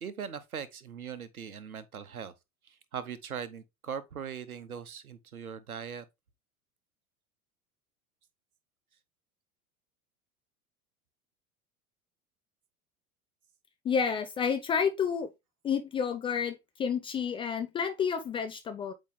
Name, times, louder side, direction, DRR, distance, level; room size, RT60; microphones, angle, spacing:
voice 1, 0.0-2.3 2.9-6.1, right 7 dB, 80° right, 1.0 m, -40 dB
voice 2, 13.8-15.3 15.6-18.9, left 6 dB, 15° left, 0.4 m, -30 dB
8.3 x 3.2 x 3.5 m
figure-of-eight pair, 80°, 43 cm